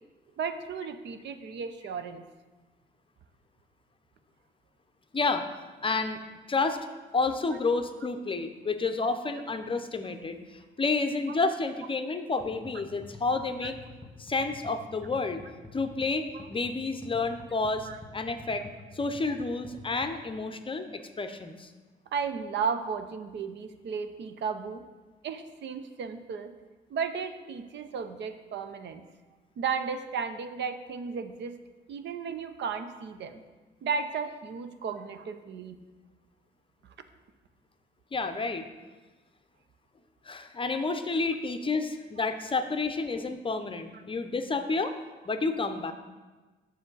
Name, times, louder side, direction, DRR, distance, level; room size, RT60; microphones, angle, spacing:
voice 1, 0.4-2.2 11.3-11.4 13.6-13.7 17.8-18.0 22.1-24.8 25.2-26.5 26.9-29.0 29.6-31.6 31.9-33.4 33.8-35.8, right 6 dB, 65° right, 9 dB, 0.6 m, -34 dB
voice 2, 5.1-5.4 5.8-6.2 6.5-6.8 7.1-13.8 14.2-15.4 15.7-18.6 18.9-21.7 38.1-38.7 40.2-44.9 45.2-45.9, left 3 dB, 25° left, 7 dB, 0.6 m, -30 dB
sound 1, 12.4-20.4, left 2 dB, 10° left, 1.7 m, -48 dB
7.8 x 6.5 x 3.9 m, 1.3 s
cardioid pair, 90°, 20 cm